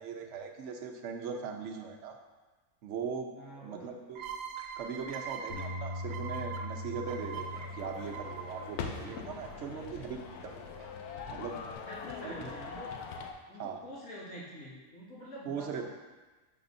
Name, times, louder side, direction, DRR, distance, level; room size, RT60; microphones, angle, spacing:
voice 1, 0.0-2.2 2.8-3.3 3.6-4.2 4.8-10.2 10.4-10.9 11.3-11.6 12.2-12.5 13.6-13.8 15.5-15.8, right 6 dB, 60° right, 3 dB, 0.9 m, -40 dB
voice 2, 3.4-3.9 9.6-9.9 11.9-13.0 13.5-15.8, equal, 70° left, -7 dB, 2.2 m, -46 dB
sound 1, 4.2-9.6, right 6 dB, 80° right, 1.1 m, -42 dB
Bass guitar, 5.5-11.7, left 2 dB, 30° left, 1.3 m, -44 dB
sound 2, 7.0-13.3, left 5 dB, 85° left, 1.1 m, -43 dB
10.5 x 4.3 x 2.6 m, 1.2 s
omnidirectional pair, 1.6 m